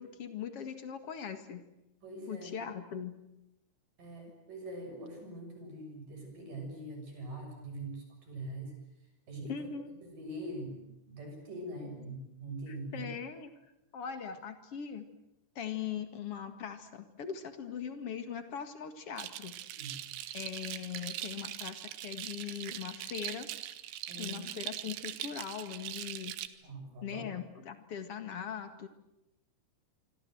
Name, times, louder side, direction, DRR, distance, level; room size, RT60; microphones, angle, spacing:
voice 1, 0.0-1.6 2.3-3.2 9.5-9.9 12.7-13.5 13.9-15.1 15.6-19.6 20.3-23.5 24.2-26.4 27.0-28.9, left 8 dB, 50° left, 9 dB, 1.8 m, -40 dB
voice 2, 2.0-2.6 4.0-8.7 9.3-9.7 10.0-13.1 19.7-20.0 24.1-24.5 26.6-27.3, right 1 dB, 45° right, 3 dB, 8.3 m, -43 dB
Rattle Loop hard, 19.2-26.5, right 13 dB, 80° right, 3.5 m, -41 dB
26.0 x 25.5 x 7.9 m, 0.87 s
omnidirectional pair, 5.3 m